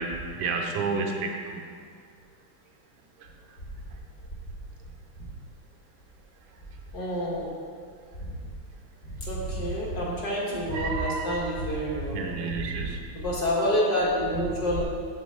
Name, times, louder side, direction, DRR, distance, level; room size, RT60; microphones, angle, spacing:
voice 1, 0.0-1.6 10.7-11.4 12.1-13.0, right 4 dB, 75° right, 2 dB, 1.5 m, -31 dB
voice 2, 6.9-7.5 9.3-12.2 12.6-12.7 13.1-14.8, equal, 50° left, -5 dB, 2.0 m, -27 dB
7.2 x 4.0 x 6.6 m, 2.1 s
omnidirectional pair, 2.3 m